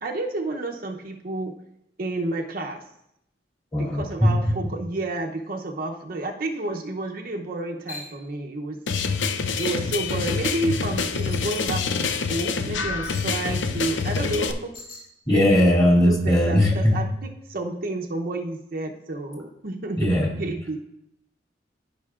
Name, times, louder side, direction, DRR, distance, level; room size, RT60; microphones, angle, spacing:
voice 1, 0.0-1.5 2.0-2.8 3.7-8.8 9.6-14.7 15.3-20.8, right 2 dB, 55° right, 2 dB, 0.7 m, -30 dB
voice 2, 3.7-4.3 15.3-17.0 20.0-20.3, left 1 dB, 25° left, -3 dB, 2.5 m, -19 dB
sound 1, 7.9-8.1 9.6-9.9 11.3-11.8 13.0-13.3 14.7-15.0, left 3 dB, 50° left, 2.7 m, -39 dB
sound 2, 8.9-14.5, left 5 dB, 85° left, 0.6 m, -26 dB
14.5 x 5.3 x 2.4 m, 0.80 s
head